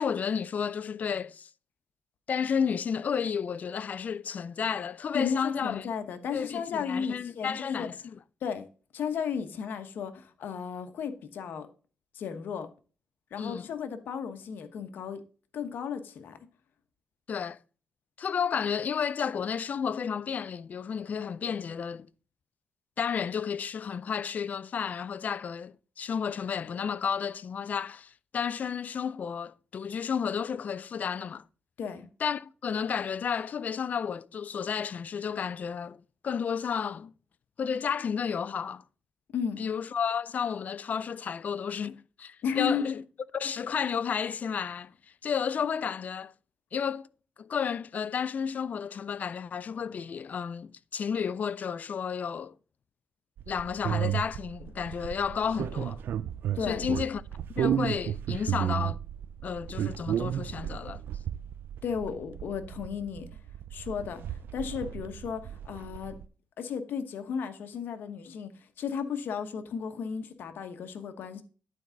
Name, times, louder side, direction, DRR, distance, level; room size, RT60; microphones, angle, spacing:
voice 1, 0.0-1.5 2.3-5.9 6.3-8.2 13.4-13.7 17.3-17.6 18.2-22.1 23.0-31.4 32.2-37.1 37.6-38.8 39.6-43.0 43.3-44.9 45.2-46.3 46.7-47.1 47.4-52.6 53.5-56.0 56.6-57.2 57.6-59.0 59.4-61.0, left 7 dB, 50° left, 0.4 m, -32 dB
voice 2, 5.1-7.9 8.4-8.7 8.9-11.7 12.1-12.7 13.3-15.2 15.5-16.4 31.8-32.1 39.3-39.6 42.4-42.9 56.5-56.9 61.8-63.3 63.7-66.2 66.6-71.4, left 7 dB, 80° left, 1.1 m, -34 dB
sound 1, 53.4-66.3, right 10 dB, 85° right, 0.4 m, -33 dB
11.0 x 4.7 x 3.9 m
cardioid pair, 105°, 3 cm